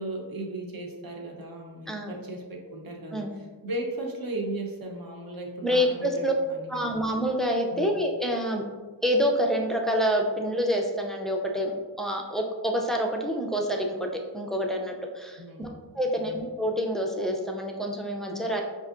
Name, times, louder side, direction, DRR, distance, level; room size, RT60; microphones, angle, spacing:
voice 1, 0.0-7.0 7.7-7.9 15.4-15.8 16.1-16.4, right 1 dB, 50° right, 0 dB, 0.8 m, -36 dB
voice 2, 1.9-2.2 3.1-3.3 5.6-6.3 6.7-8.6 9.0-14.1 14.3-15.7 15.9-18.6, equal, ahead, 1 dB, 0.4 m, -27 dB
5.5 x 2.6 x 2.4 m, 1.4 s
wide cardioid pair, 110°, 44 cm